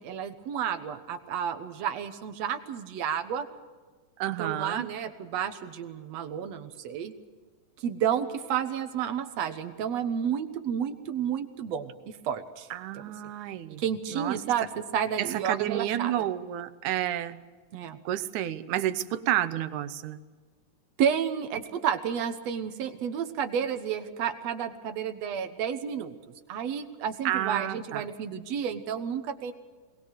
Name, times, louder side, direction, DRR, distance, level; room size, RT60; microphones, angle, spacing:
voice 1, 0.0-3.5 4.4-7.1 7.8-11.9 12.2-12.7 13.0-13.1 13.8-16.1 17.7-18.0 21.0-26.1 26.5-29.5, right 8 dB, 65° right, 9 dB, 2.2 m, -31 dB
voice 2, 4.2-4.9 12.7-13.8 14.1-14.4 15.2-17.4 18.1-20.2 27.2-28.0, right 12 dB, 85° right, 13 dB, 2.3 m, -30 dB
21.5 x 19.5 x 6.7 m, 1.4 s
omnidirectional pair, 3.4 m